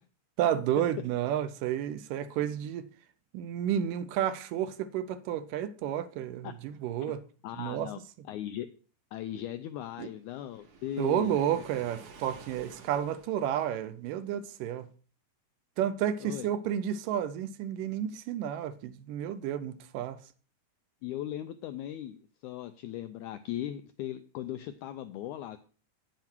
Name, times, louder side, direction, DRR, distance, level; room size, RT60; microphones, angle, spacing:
voice 1, 0.4-2.9 3.3-7.2 7.6-7.9 10.0-10.1 11.0-14.9 15.8-20.2, right 10 dB, 80° right, 2.1 m, -31 dB
voice 2, 7.4-8.0 8.3-8.7 9.1-11.6 16.2-16.5 21.0-22.2 22.4-25.6, left 12 dB, 85° left, 1.7 m, -38 dB
Waves surf, 10.3-13.8, right 4 dB, 65° right, 2.9 m, -52 dB
9.1 x 7.8 x 4.5 m
omnidirectional pair, 4.0 m